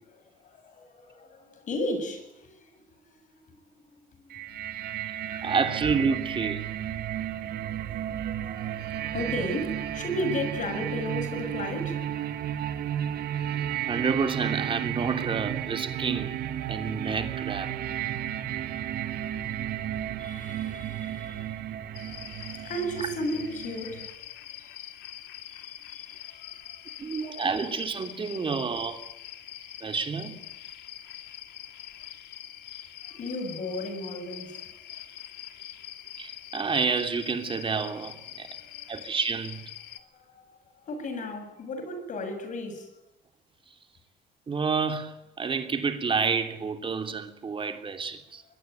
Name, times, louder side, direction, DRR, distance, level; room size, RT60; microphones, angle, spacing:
voice 1, 0.4-5.5 7.1-12.6 20.2-22.2 22.5-24.1 24.6-24.7 25.5-26.8 33.1-34.7 38.7-38.8 40.0-42.9, left 1 dB, 50° left, 7.5 m, -36 dB
sound 1, 4.3-24.1, right 11 dB, 70° right, 2.6 m, -33 dB
voice 2, 5.1-6.6 8.4-8.8 13.9-16.4 16.7-17.7 27.0-29.0 29.8-30.4 36.2-38.5 38.9-39.6 44.5-48.4, right 5 dB, 30° right, 3.1 m, -29 dB
sound 2, 21.9-40.0, left 12 dB, 80° left, 2.4 m, -44 dB
23.5 x 21.5 x 9.4 m
cardioid pair, 110°, 17 cm